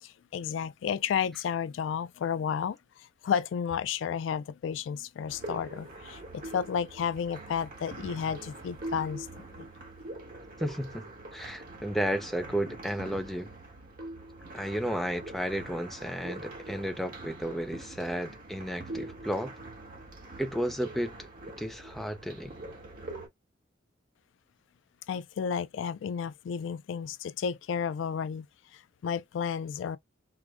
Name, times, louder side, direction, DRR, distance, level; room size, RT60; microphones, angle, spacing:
voice 1, 0.0-9.7 25.1-28.5 28.7-30.0, left 7 dB, 85° left, 0.3 m, -32 dB
sound 1, 5.3-23.3, right 2 dB, 50° right, 1.3 m, -44 dB
voice 2, 10.6-11.0 11.3-13.5 14.5-19.5 20.4-21.2 21.6-22.5, equal, ahead, 0.4 m, -33 dB
4.8 x 2.1 x 2.4 m
head